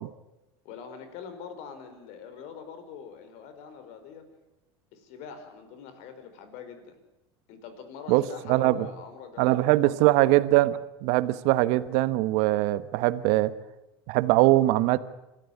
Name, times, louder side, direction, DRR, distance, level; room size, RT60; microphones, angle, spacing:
voice 1, 0.6-4.2 4.9-7.0 7.5-10.3, left 6 dB, 60° left, 9 dB, 4.8 m, -44 dB
voice 2, 8.5-8.9 9.4-13.5 14.1-15.0, right 17 dB, 60° right, 15 dB, 1.2 m, -22 dB
26.0 x 14.0 x 9.6 m, 0.96 s
hypercardioid pair, 100°, 13 cm